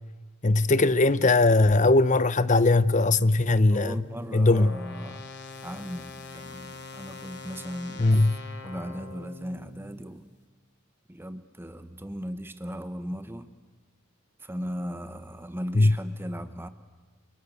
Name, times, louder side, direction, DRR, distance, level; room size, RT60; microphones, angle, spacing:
voice 1, 0.4-4.0 4.3-4.7 8.0-8.4 15.7-15.9, left 2 dB, 35° left, 0.8 m, -20 dB
sound 1, 3.1-10.2, left 3 dB, 55° left, 2.5 m, -44 dB
voice 2, 3.7-5.3 5.6-8.1 8.6-10.3 11.1-13.5 14.4-16.7, equal, 10° right, 0.9 m, -37 dB
29.0 x 24.5 x 8.1 m
head